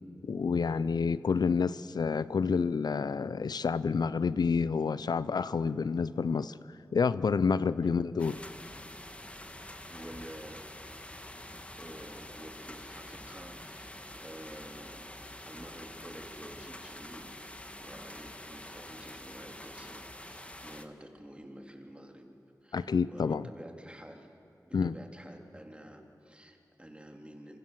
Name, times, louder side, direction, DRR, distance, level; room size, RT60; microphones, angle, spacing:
voice 1, 0.2-6.6 6.9-8.4 22.7-23.5 24.7-24.9, left 5 dB, 85° left, 16 dB, 0.6 m, -29 dB
sound 1, 8.2-20.9, left 1 dB, 20° left, 1.7 m, -46 dB
voice 2, 9.9-10.6 11.8-15.1 15.5-22.3 22.6-24.4 24.7-27.6, right 1 dB, 15° right, 3 dB, 3.5 m, -49 dB
27.5 x 23.5 x 7.6 m, 3.0 s
wide cardioid pair, 55°, 7 cm